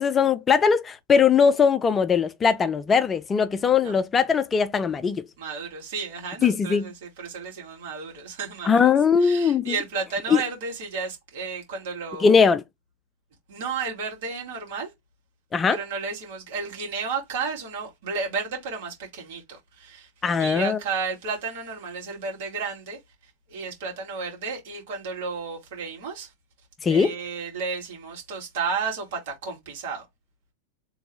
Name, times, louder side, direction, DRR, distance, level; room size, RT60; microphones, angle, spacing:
voice 1, 0.0-5.2 6.4-6.9 8.6-9.8 10.3-10.4 12.2-12.6 15.5-15.8 20.2-20.8 26.8-27.1, left 6 dB, 20° left, 0.3 m, -20 dB
voice 2, 5.4-8.9 9.2-12.4 13.5-14.9 15.7-20.1 20.4-23.0 23.5-26.3 26.9-30.0, right 5 dB, 55° right, 2.1 m, -32 dB
3.4 x 3.0 x 3.5 m
figure-of-eight pair, 90°, 0 cm